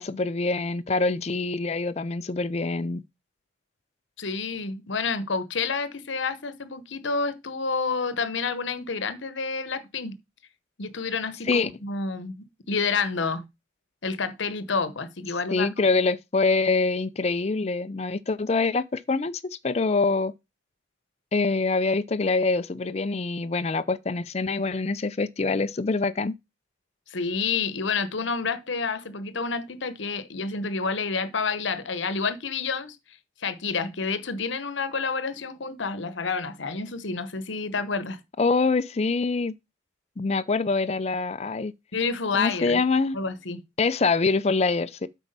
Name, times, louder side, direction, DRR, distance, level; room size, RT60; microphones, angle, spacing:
voice 1, 0.0-3.0 11.5-11.7 15.5-20.3 21.3-26.3 38.4-39.5 40.2-41.7 42.3-43.2 43.8-45.1, left 3 dB, 35° left, 0.4 m, -25 dB
voice 2, 4.2-10.1 10.8-13.4 14.0-15.9 27.1-33.0 33.4-38.2 41.9-42.8 43.1-43.6, left 4 dB, 70° left, 1.0 m, -29 dB
8.2 x 4.6 x 5.3 m
head